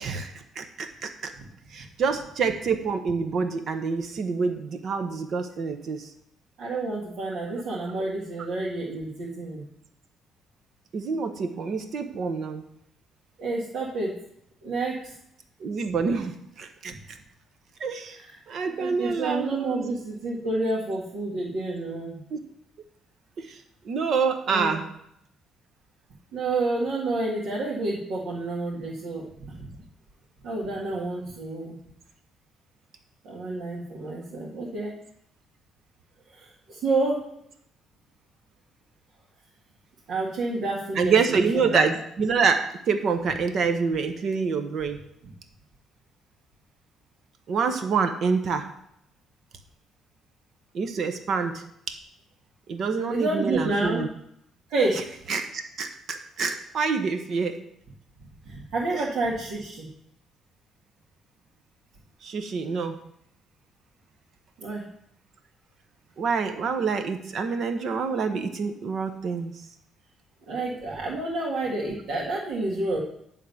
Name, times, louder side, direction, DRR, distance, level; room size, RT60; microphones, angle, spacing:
voice 1, 0.0-1.3 1.7-6.1 7.4-7.6 10.9-12.6 15.6-16.9 17.8-18.2 18.5-19.9 22.3-22.4 23.4-23.6 23.8-24.9 41.0-42.6 42.9-45.0 47.5-48.7 50.7-51.9 52.7-54.1 55.3-57.5 58.9-59.0 62.2-63.0 66.2-69.5, right 5 dB, 55° right, 7 dB, 0.8 m, -27 dB
voice 2, 6.6-9.6 13.4-14.1 14.6-15.1 18.1-18.4 18.8-22.2 24.5-24.8 26.3-29.7 30.4-31.7 33.2-34.9 36.3-37.2 40.1-41.9 53.1-54.1 54.7-55.1 58.5-59.9 64.6-64.9 70.5-73.0, right 2 dB, 80° right, -6 dB, 1.8 m, -29 dB
10.5 x 3.7 x 7.0 m, 0.74 s
cardioid pair, 110°, 0 cm